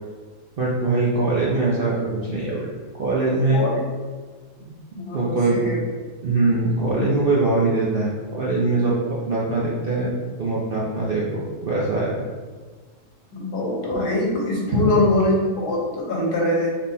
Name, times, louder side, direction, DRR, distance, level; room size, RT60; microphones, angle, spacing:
voice 1, 0.6-2.7 3.0-3.6 5.1-5.6 6.2-10.1 10.4-12.2 14.7-14.8, right 2 dB, 55° right, -5 dB, 0.6 m, -22 dB
voice 2, 4.9-5.8 13.3-16.7, left 2 dB, 90° left, -3 dB, 1.5 m, -23 dB
3.9 x 3.6 x 2.7 m, 1.4 s
omnidirectional pair, 1.6 m